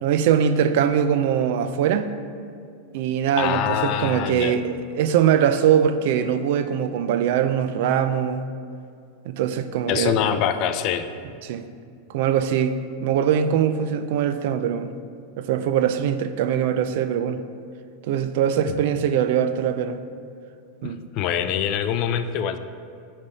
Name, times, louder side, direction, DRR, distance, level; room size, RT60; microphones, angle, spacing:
voice 1, 0.0-2.1 2.9-8.4 9.3-10.2 11.4-11.6 12.1-12.8 13.0-14.9 15.4-17.4 18.0-20.0 20.8-21.0, right 8 dB, 65° right, 10 dB, 0.4 m, -22 dB
voice 2, 3.4-4.6 9.9-11.1 18.7-18.8 20.8-22.6, left 9 dB, 45° left, 10 dB, 0.4 m, -24 dB
10.5 x 3.5 x 4.1 m, 2.3 s
supercardioid pair, 135°, 0 cm